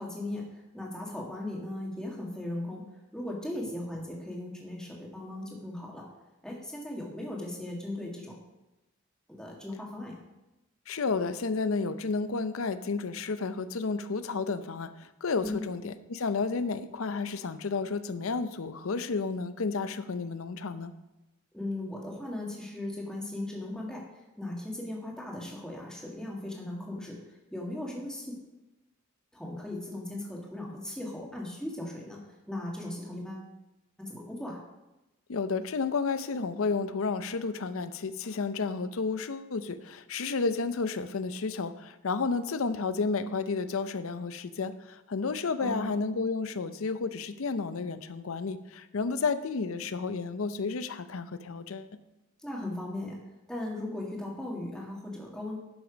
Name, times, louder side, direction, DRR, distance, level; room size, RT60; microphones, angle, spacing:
voice 1, 0.0-2.8 3.1-6.0 6.4-8.4 9.4-10.1 15.4-15.6 21.5-24.0 24.4-28.3 29.3-33.5 34.0-34.6 45.6-45.9 52.4-53.2 53.5-55.6, left 1 dB, 5° left, -2 dB, 1.8 m, -37 dB
voice 2, 10.9-20.9 35.3-52.0, left 4 dB, 75° left, 12 dB, 0.6 m, -31 dB
11.5 x 6.0 x 5.1 m, 0.99 s
head